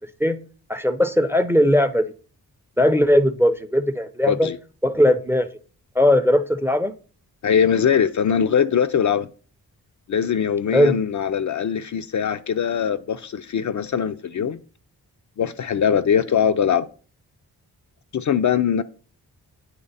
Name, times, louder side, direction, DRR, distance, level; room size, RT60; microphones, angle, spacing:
voice 1, 0.7-2.1 2.8-4.5 4.8-5.5 6.0-6.9 10.7-11.0, left 1 dB, 5° right, 0.5 m, -18 dB
voice 2, 4.3-4.6 7.4-9.3 10.1-14.6 15.4-16.9 18.1-18.8, left 7 dB, 50° left, 0.5 m, -21 dB
9.0 x 3.1 x 4.0 m
cardioid pair, 55°, 39 cm